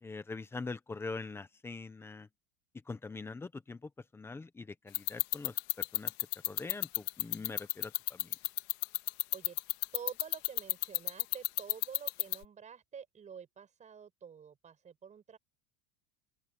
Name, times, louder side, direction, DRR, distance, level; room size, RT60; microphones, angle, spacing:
voice 1, 0.0-2.3 2.9-5.6 5.9-6.1 6.4-8.3, left 3 dB, 5° left, 0.7 m, -43 dB
sound 1, 4.9-12.4, left 22 dB, 50° left, 1.7 m, -30 dB
voice 2, 9.0-9.6 9.9-15.4, right 7 dB, 15° right, 5.5 m, -49 dB
open air
supercardioid pair, 170°, 42 cm